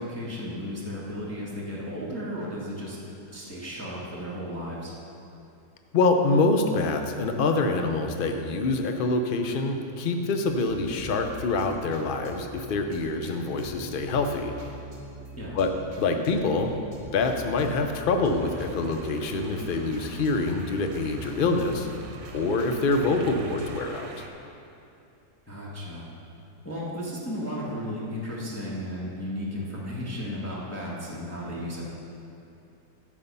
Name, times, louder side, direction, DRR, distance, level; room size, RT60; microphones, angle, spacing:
voice 1, 0.0-3.0 3.3-4.9 15.4-15.6 23.2-23.4 25.5-26.1 26.6-31.8, equal, 10° left, -6 dB, 1.4 m, -34 dB
voice 2, 5.9-14.5 15.5-15.7 16.0-16.7 17.1-21.9 22.3-24.3, left 3 dB, 55° left, 5 dB, 0.6 m, -25 dB
sound 1, 10.4-23.9, left 1 dB, 40° right, 1.6 m, -44 dB
sound 2, 18.3-24.3, right 4 dB, 65° right, 1.4 m, -47 dB
11.0 x 7.5 x 5.5 m, 2.6 s
omnidirectional pair, 1.9 m